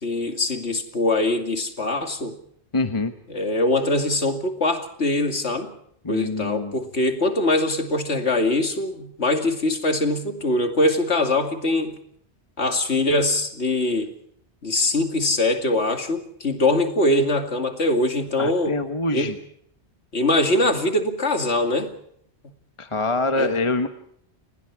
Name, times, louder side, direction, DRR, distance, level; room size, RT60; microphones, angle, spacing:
voice 1, 0.0-2.3 3.3-5.7 6.1-12.0 12.6-14.1 14.6-18.8 19.1-19.3 20.1-21.9 23.3-23.5, left 2 dB, 80° left, 5 dB, 2.8 m, -22 dB
voice 2, 2.7-3.1 6.0-6.7 18.4-19.4 22.8-23.9, left 2 dB, 30° left, 7 dB, 1.3 m, -25 dB
29.0 x 21.0 x 4.8 m, 0.69 s
omnidirectional pair, 1.1 m